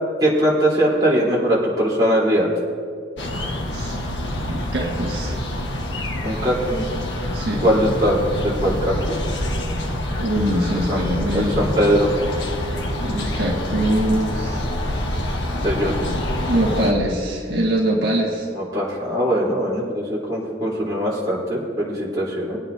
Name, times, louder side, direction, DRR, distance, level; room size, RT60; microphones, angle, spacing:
voice 1, 0.2-2.5 6.2-6.8 7.6-9.2 10.9-11.0 11.3-12.2 15.6-15.9 18.5-22.6, equal, 20° right, -7 dB, 3.4 m, -21 dB
sound 1, 3.2-16.9, left 1 dB, 85° left, 1.2 m, -26 dB
voice 2, 4.7-5.4 7.3-7.7 10.2-11.7 12.9-14.7 16.5-18.5, right 1 dB, 65° right, -3 dB, 1.6 m, -23 dB
22.5 x 9.1 x 2.7 m, 2.2 s
head